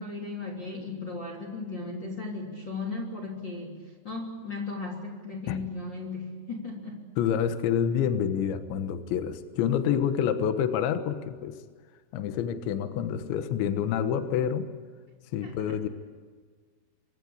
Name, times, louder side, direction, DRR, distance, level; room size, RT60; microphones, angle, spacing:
voice 1, 0.0-3.8 4.0-7.0 15.4-15.8, left 3 dB, 25° left, -1 dB, 3.2 m, -36 dB
voice 2, 7.2-11.6 12.1-14.7 15.3-15.9, left 8 dB, 70° left, 9 dB, 3.3 m, -27 dB
26.5 x 24.0 x 8.7 m, 1.5 s
omnidirectional pair, 5.8 m